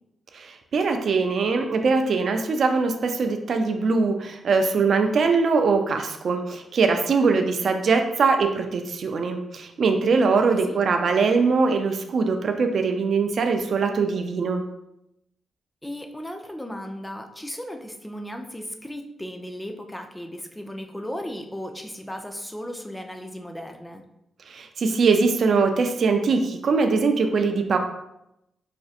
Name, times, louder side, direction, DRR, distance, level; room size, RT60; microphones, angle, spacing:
voice 1, 0.3-14.6 24.5-27.8, right 4 dB, 65° right, 5 dB, 0.4 m, -22 dB
voice 2, 15.8-24.0, equal, 10° left, 4 dB, 0.5 m, -36 dB
5.0 x 2.5 x 2.4 m, 0.84 s
cardioid pair, 65°, 0 cm